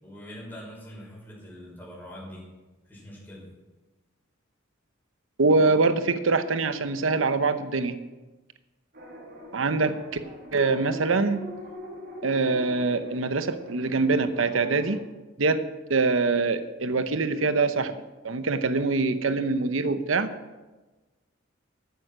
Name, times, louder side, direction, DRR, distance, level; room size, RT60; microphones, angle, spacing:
voice 1, 0.0-2.5 2.9-3.5, equal, 10° left, -5 dB, 5.8 m, -43 dB
voice 2, 5.4-7.9 9.5-10.0 10.5-11.4 12.2-15.0 15.4-15.6 15.9-18.0 18.2-20.3, right 3 dB, 75° right, 11 dB, 0.9 m, -24 dB
sound 1, 8.9-15.0, equal, 55° right, 3.2 m, -42 dB
14.5 x 9.4 x 6.2 m, 1.2 s
head